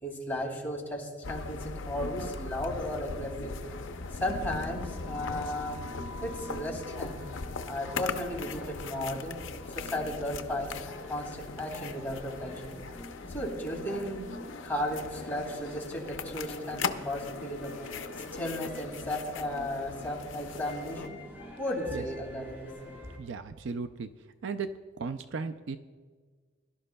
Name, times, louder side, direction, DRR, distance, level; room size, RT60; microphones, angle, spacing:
voice 1, 0.0-3.6 4.1-5.8 6.2-7.2 7.7-9.4 9.7-10.7 11.1-12.7 13.3-14.3 14.6-17.7 18.3-21.2 21.6-22.7, left 1 dB, 10° left, -2 dB, 2.2 m, -35 dB
sound 1, 1.2-21.1, left 4 dB, 70° left, 0.6 m, -40 dB
sound 2, 3.6-23.2, left 1 dB, 10° right, 3.6 m, -47 dB
voice 2, 23.2-24.1 24.4-24.7 25.0-25.8, right 5 dB, 65° right, 10 dB, 0.4 m, -35 dB
22.0 x 12.0 x 2.2 m, 1.5 s
head